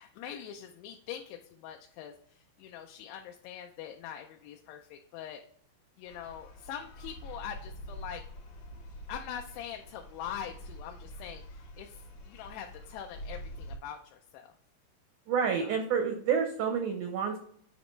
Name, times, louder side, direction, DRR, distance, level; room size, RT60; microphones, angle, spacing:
voice 1, 0.0-5.4 6.0-8.2 9.1-14.5 15.6-15.7, left 9 dB, 85° left, 3 dB, 2.7 m, -43 dB
sound 1, 6.1-13.8, equal, 60° left, 2.8 m, -46 dB
voice 2, 15.3-17.4, right 6 dB, 80° right, 4 dB, 1.8 m, -29 dB
8.6 x 5.1 x 3.1 m, 0.62 s
omnidirectional pair, 4.7 m